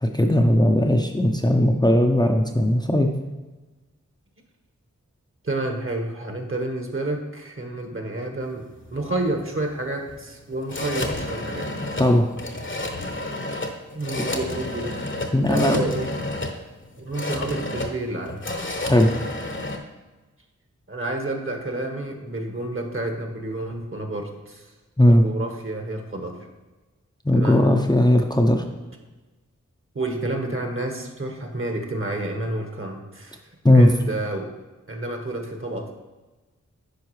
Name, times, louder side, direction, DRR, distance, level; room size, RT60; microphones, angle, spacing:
voice 1, 0.0-3.1 12.0-12.3 15.3-15.8 18.9-19.1 25.0-25.2 27.3-28.6 33.6-33.9, left 1 dB, 15° left, 2 dB, 0.7 m, -17 dB
voice 2, 5.4-11.7 13.9-15.1 15.5-16.1 17.0-18.4 20.9-24.6 25.1-26.4 27.3-27.8 29.9-33.4 33.7-34.5 34.9-35.9, right 2 dB, 40° right, 3 dB, 1.3 m, -29 dB
sound 1, 8.4-19.8, left 2 dB, 40° left, 1.0 m, -31 dB
10.5 x 4.7 x 3.2 m, 1.2 s
cardioid pair, 40°, 31 cm